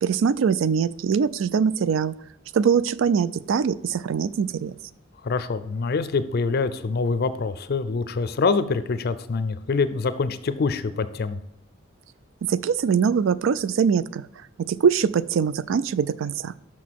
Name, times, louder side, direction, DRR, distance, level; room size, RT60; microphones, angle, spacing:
voice 1, 0.0-2.2 2.5-4.7 12.4-14.2 14.6-16.5, right 6 dB, 75° right, 18 dB, 0.3 m, -22 dB
voice 2, 5.2-11.4, left 4 dB, 55° left, 13 dB, 0.4 m, -25 dB
6.0 x 6.0 x 4.6 m, 0.85 s
head